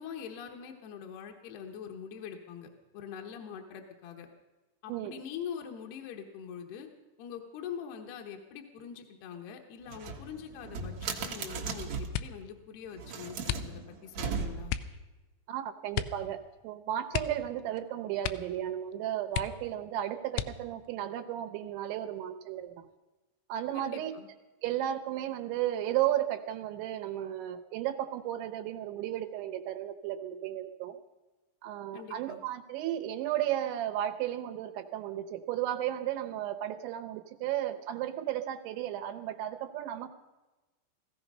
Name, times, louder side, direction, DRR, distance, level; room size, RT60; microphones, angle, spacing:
voice 1, 0.0-4.3 4.8-6.9 7.2-14.7 23.7-24.3 31.9-32.4, left 8 dB, 70° left, 3 dB, 2.9 m, -43 dB
sound 1, 9.9-12.2 12.9-14.9, right 5 dB, 65° right, 1.8 m, -37 dB
sound 2, 12.1-12.5 13.4-14.1 14.7-15.0 15.9-16.3 16.5-16.6 17.1-17.8 18.2-18.6 18.9-19.0 19.3-19.8 20.3-20.9 21.6-22.2 22.6-23.0, left 11 dB, 85° left, 3.1 m, -35 dB
voice 2, 15.5-22.7 23.5-24.1 24.6-31.0 31.6-40.1, right 12 dB, 80° right, 7 dB, 3.2 m, -34 dB
17.0 x 15.5 x 5.4 m, 1.1 s
omnidirectional pair, 5.4 m